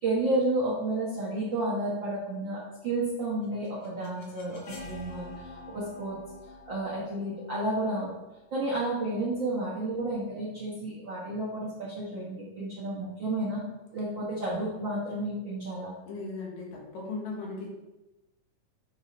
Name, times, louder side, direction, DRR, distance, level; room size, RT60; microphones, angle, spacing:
voice 1, 0.0-6.2 6.6-8.1 8.5-13.6 13.9-15.9, right 2 dB, 55° right, -7 dB, 1.3 m, -31 dB
sound 1, 3.2-9.1, left 2 dB, 55° left, 1.8 m, -48 dB
voice 2, 16.1-17.7, left 3 dB, 75° left, -3 dB, 3.2 m, -37 dB
9.6 x 4.7 x 3.1 m, 1.0 s
omnidirectional pair, 3.9 m